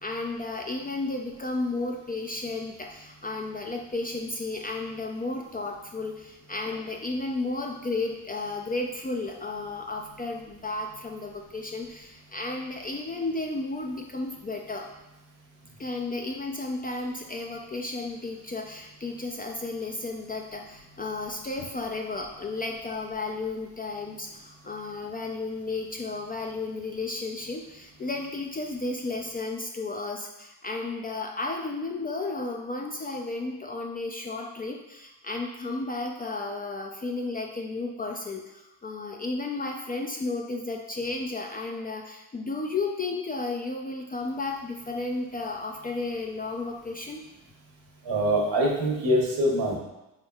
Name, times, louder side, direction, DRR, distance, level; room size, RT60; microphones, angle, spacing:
voice 1, 0.0-14.9 15.8-47.3, left 3 dB, 20° left, 1 dB, 0.3 m, -33 dB
voice 2, 48.0-49.8, right 1 dB, 75° right, -2 dB, 1.2 m, -24 dB
4.2 x 3.6 x 2.3 m, 0.97 s
supercardioid pair, 60°, 45 cm